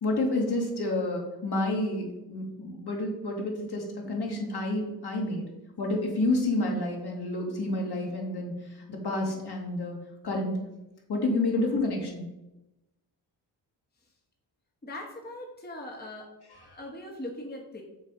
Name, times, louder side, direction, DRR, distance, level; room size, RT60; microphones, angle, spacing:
voice 1, 0.0-5.5 5.8-10.0 10.2-10.6 11.1-12.3 16.5-16.6, left 2 dB, 50° left, 0 dB, 2.0 m, -29 dB
voice 2, 14.8-16.3 16.6-17.8, left 1 dB, 20° left, 1 dB, 1.2 m, -40 dB
6.3 x 3.5 x 5.2 m, 0.96 s
supercardioid pair, 50°, 49 cm